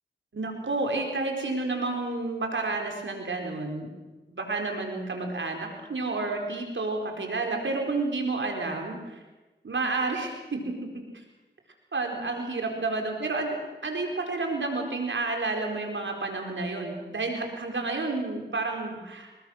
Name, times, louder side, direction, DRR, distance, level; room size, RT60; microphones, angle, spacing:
voice 1, 0.3-3.9 4.3-9.2 9.6-10.9 11.9-19.3, right 3 dB, 85° right, 2 dB, 4.5 m, -30 dB
27.5 x 22.0 x 6.5 m, 1.1 s
cardioid pair, 45°, 19 cm